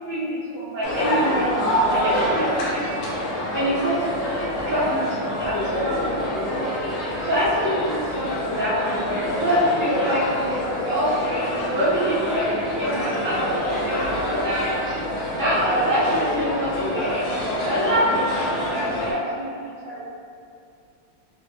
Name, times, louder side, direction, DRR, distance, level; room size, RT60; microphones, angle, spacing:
voice 1, 0.1-3.1 3.5-6.3 7.2-14.9 15.4-20.0, equal, 70° right, -11 dB, 1.0 m, -26 dB
sound 1, 0.8-19.1, left 1 dB, 70° left, 1.2 m, -26 dB
4.5 x 2.1 x 2.5 m, 2.4 s
omnidirectional pair, 2.4 m